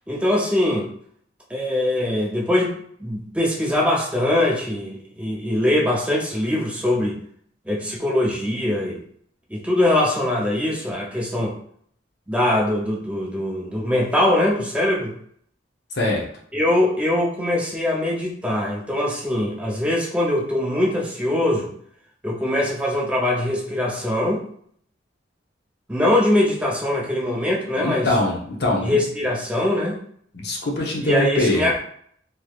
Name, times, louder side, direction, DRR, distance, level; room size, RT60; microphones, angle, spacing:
voice 1, 0.1-0.9 1.5-7.2 7.7-9.0 9.5-11.5 12.3-15.1 16.5-21.7 22.2-24.4 25.9-28.1 28.8-30.0 31.0-31.8, left 1 dB, 5° right, -3 dB, 0.5 m, -22 dB
voice 2, 15.9-16.3 27.8-28.9 30.3-31.7, left 2 dB, 55° left, -1 dB, 0.8 m, -22 dB
3.3 x 2.9 x 2.3 m, 0.63 s
head